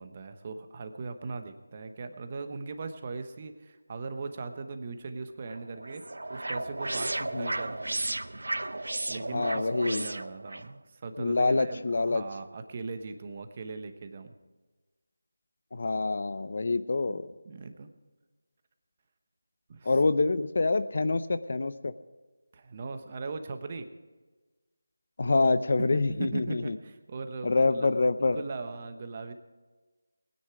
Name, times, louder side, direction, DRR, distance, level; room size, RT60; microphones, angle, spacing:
voice 1, 0.0-6.0 6.3-8.2 9.1-14.3 17.1-17.2 17.4-17.9 19.7-19.9 22.5-23.9 25.8-27.9 28.2-29.3, right 4 dB, 30° right, 8 dB, 1.0 m, -39 dB
sound 1, 5.5-10.7, right 2 dB, 80° right, 0.7 m, -34 dB
voice 2, 9.3-10.1 11.2-12.2 15.7-17.3 19.8-21.9 25.2-26.8 27.4-28.4, left 3 dB, 50° left, 13 dB, 0.8 m, -26 dB
21.0 x 9.9 x 4.9 m, 1.3 s
figure-of-eight pair, 170°, 0 cm